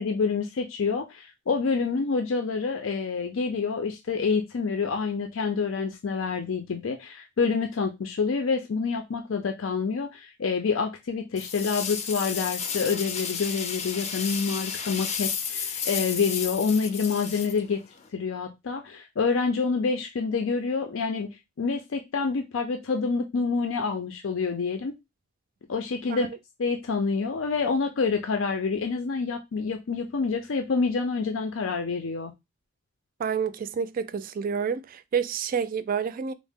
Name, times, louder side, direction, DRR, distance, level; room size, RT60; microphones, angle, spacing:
voice 1, 0.0-17.8 18.1-21.3 21.6-24.9 25.7-26.3 26.6-32.3, left 5 dB, 90° left, 0.5 m, -27 dB
sound 1, 11.4-18.1, left 6 dB, 35° left, 0.4 m, -32 dB
voice 2, 33.2-36.3, right 6 dB, 45° right, 0.3 m, -29 dB
3.6 x 2.0 x 3.5 m
head